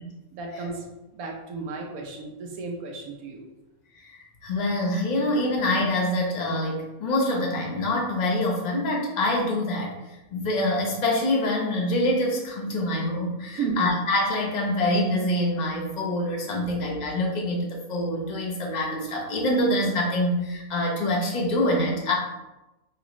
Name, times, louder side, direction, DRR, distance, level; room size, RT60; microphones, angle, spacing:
voice 1, 0.3-0.9 1.1-3.5 13.5-13.9 16.6-16.7, right 4 dB, 85° right, 0 dB, 1.1 m, -33 dB
voice 2, 4.0-22.1, left 1 dB, 40° left, -1 dB, 0.8 m, -25 dB
5.8 x 2.4 x 3.0 m, 1.0 s
omnidirectional pair, 1.5 m